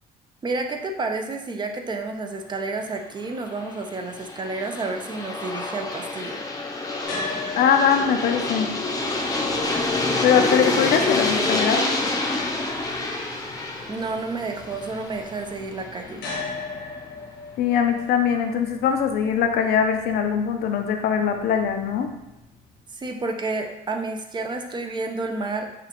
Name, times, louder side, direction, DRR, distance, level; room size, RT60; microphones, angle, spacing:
voice 1, 0.4-6.4 13.9-16.3 22.9-25.7, right 3 dB, 25° right, 4 dB, 0.5 m, -30 dB
Aircraft, 3.3-16.2, left 2 dB, 20° left, 0.6 m, -27 dB
sound 1, 7.0-23.2, left 3 dB, 85° left, 1.2 m, -40 dB
voice 2, 7.6-8.7 10.2-11.9 17.6-22.1, left 7 dB, 70° left, 5 dB, 0.5 m, -21 dB
5.8 x 2.4 x 3.0 m, 0.93 s
cardioid pair, 110°, 17 cm